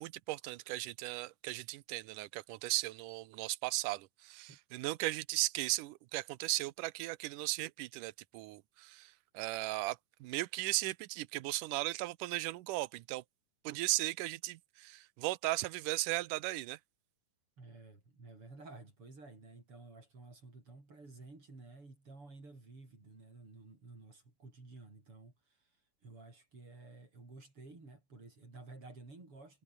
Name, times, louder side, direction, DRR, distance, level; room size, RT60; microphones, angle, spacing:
voice 1, 0.0-13.2 13.6-16.8, right 18 dB, 75° right, 2.2 m, -37 dB
voice 2, 17.6-29.6, right 3 dB, 35° right, 7.3 m, -53 dB
omnidirectional pair, 4.2 m